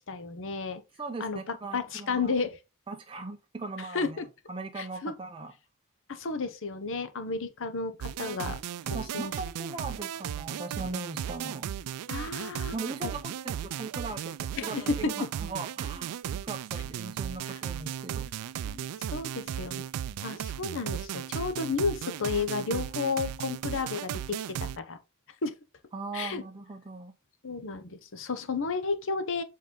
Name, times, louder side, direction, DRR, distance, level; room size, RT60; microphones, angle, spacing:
voice 1, 0.0-0.8 1.2-2.6 3.8-4.3 4.8-5.1 6.1-8.6 8.9-9.3 12.1-12.7 13.0-13.1 14.6-15.1 17.5-17.6 18.6-19.8 20.2-25.0 25.4-25.5 26.1-26.4 27.4-29.4, left 4 dB, 60° left, 0.9 m, -32 dB
voice 2, 1.0-2.3 2.9-4.2 4.5-5.5 8.4-8.5 8.9-11.7 12.7-18.3 25.9-27.1, right 3 dB, 25° right, 0.6 m, -39 dB
sound 1, 8.0-24.8, right 9 dB, 85° right, 0.3 m, -36 dB
7.4 x 4.2 x 3.8 m
head